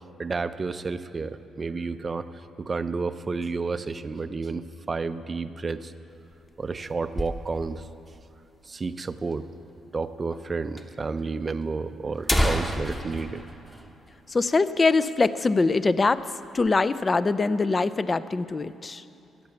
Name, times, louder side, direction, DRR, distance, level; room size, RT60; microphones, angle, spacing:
voice 1, 0.2-2.3 2.6-5.9 6.6-7.9 8.6-9.5 9.9-13.4, right 4 dB, 30° right, 11 dB, 0.5 m, -31 dB
sound 1, 6.1-7.9 8.2-8.3 8.5-8.6 9.3-9.4 10.3-10.4 10.8-10.9 11.6-11.7 12.1-14.7 15.0-15.1 15.5-15.8 16.2-16.8, equal, 10° left, 0.9 m, -30 dB
voice 2, 14.3-19.0, left 3 dB, 30° left, 15 dB, 0.4 m, -23 dB
14.0 x 8.2 x 7.0 m, 2.7 s
cardioid pair, 90°, 0 cm